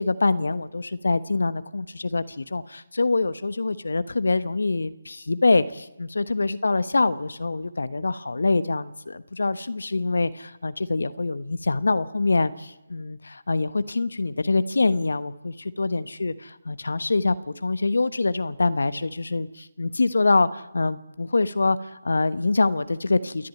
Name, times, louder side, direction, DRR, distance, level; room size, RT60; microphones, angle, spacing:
voice 1, 0.0-23.5, left 3 dB, 75° left, 13 dB, 1.2 m, -25 dB
28.5 x 12.0 x 9.6 m, 1.0 s
figure-of-eight pair, 155°, 0 cm